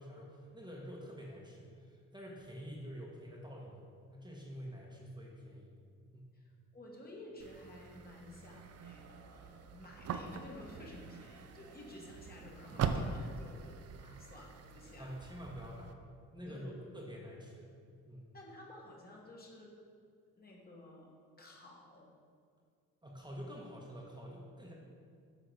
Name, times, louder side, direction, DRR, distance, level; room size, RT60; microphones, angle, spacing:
voice 1, 0.0-3.8 4.1-5.7 6.1-6.3 12.7-12.8 15.0-15.9 16.3-17.7 18.1-18.3 23.0-24.7, equal, 15° right, -3 dB, 1.1 m, -47 dB
voice 2, 6.3-15.2 16.5-16.8 18.3-19.7 20.4-21.1 21.4-22.1, left 1 dB, 30° left, -2 dB, 1.5 m, -53 dB
sound 1, 7.4-15.9, right 6 dB, 55° right, 0.5 m, -42 dB
7.8 x 3.9 x 4.7 m, 2.1 s
cardioid pair, 90°, 30 cm